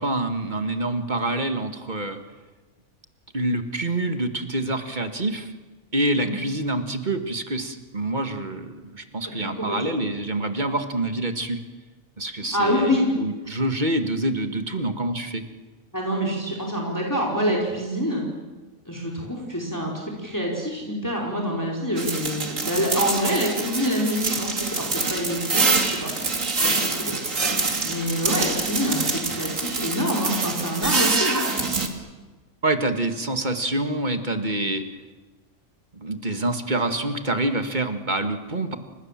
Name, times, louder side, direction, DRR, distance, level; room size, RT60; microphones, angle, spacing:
voice 1, 0.0-2.2 3.3-5.5 5.9-11.6 12.2-15.4 32.6-34.8 35.9-38.8, right 2 dB, 35° right, 7 dB, 2.0 m, -26 dB
voice 2, 9.2-9.9 12.5-13.1 15.9-18.3 18.9-26.1 27.1-27.2 27.8-31.4, equal, 15° left, -2 dB, 4.6 m, -26 dB
sound 1, 22.0-31.9, right 3 dB, 75° right, 3.0 m, -25 dB
29.5 x 26.0 x 7.5 m, 1.3 s
omnidirectional pair, 1.4 m